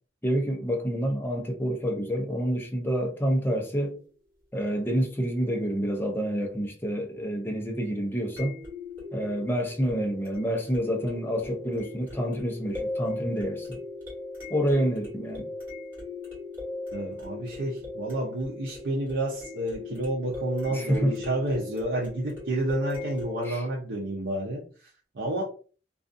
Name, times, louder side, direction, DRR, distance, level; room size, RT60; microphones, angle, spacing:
voice 1, 0.2-4.0 4.5-8.6 9.1-13.8 14.5-15.5 20.7-21.1 23.4-23.6, equal, 10° left, 0.5 m, -28 dB
sound 1, 3.7-3.8 8.4-23.5, left 2 dB, 10° right, 1.4 m, -38 dB
voice 2, 16.9-24.9 25.1-25.4, right 1 dB, 80° right, 0.6 m, -30 dB
2.4 x 2.4 x 2.5 m
head